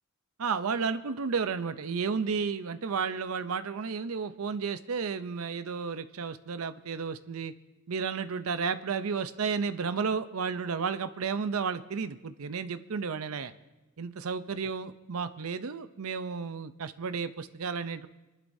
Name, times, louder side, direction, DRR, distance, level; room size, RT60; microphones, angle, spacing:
voice 1, 0.4-7.5 7.9-13.5 14.0-18.1, right 5 dB, 80° right, 12 dB, 0.6 m, -32 dB
29.0 x 11.5 x 2.7 m, 1.1 s
head